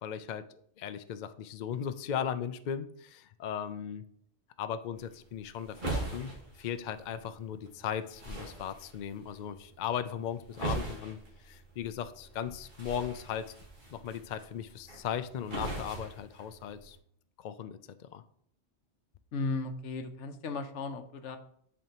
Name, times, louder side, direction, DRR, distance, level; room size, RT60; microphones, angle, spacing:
voice 1, 0.0-4.0 4.6-6.3 6.6-11.2 11.4-13.5 13.9-17.0 17.4-18.2, left 8 dB, 60° left, 11 dB, 0.5 m, -37 dB
sound 1, 5.0-17.0, right 2 dB, 45° right, 1.7 m, -42 dB
voice 2, 19.3-21.4, left 3 dB, 80° left, 8 dB, 1.0 m, -35 dB
10.5 x 4.3 x 2.9 m, 0.65 s
omnidirectional pair, 1.2 m